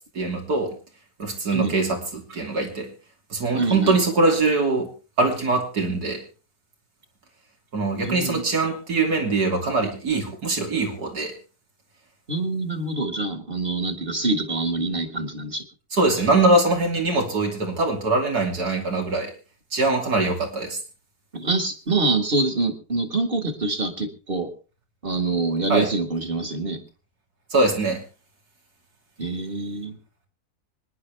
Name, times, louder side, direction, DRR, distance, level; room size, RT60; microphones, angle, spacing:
voice 1, 0.1-0.7 1.2-2.9 3.3-4.9 5.2-6.2 7.7-11.3 15.9-19.3 19.7-20.8 25.7-25.9 27.5-28.0, right 3 dB, 85° right, 2 dB, 3.5 m, -22 dB
voice 2, 3.5-4.0 8.0-8.4 12.3-15.6 21.3-24.5 25.0-26.8 29.2-30.0, right 3 dB, 35° right, 7 dB, 2.0 m, -25 dB
25.0 x 10.5 x 3.5 m, 0.34 s
omnidirectional pair, 1.6 m